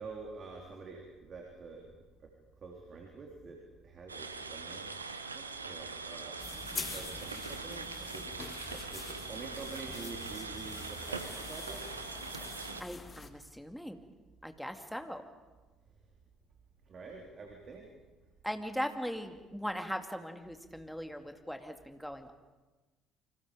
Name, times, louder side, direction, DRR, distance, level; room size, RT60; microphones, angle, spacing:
voice 1, 0.0-1.8 2.2-2.3 2.6-3.6 3.8-4.9 5.3-8.3 8.7-11.8 16.9-17.9, right 4 dB, 40° right, 1 dB, 3.6 m, -47 dB
sound 1, 4.1-12.8, right 4 dB, 90° right, 1.0 m, -42 dB
sound 2, 6.4-13.3, left 4 dB, 30° left, 2.3 m, -45 dB
voice 2, 12.6-14.0 14.4-15.2 18.4-22.3, equal, ahead, 6 dB, 2.4 m, -39 dB
28.5 x 25.0 x 5.2 m, 1.2 s
figure-of-eight pair, 55°, 0 cm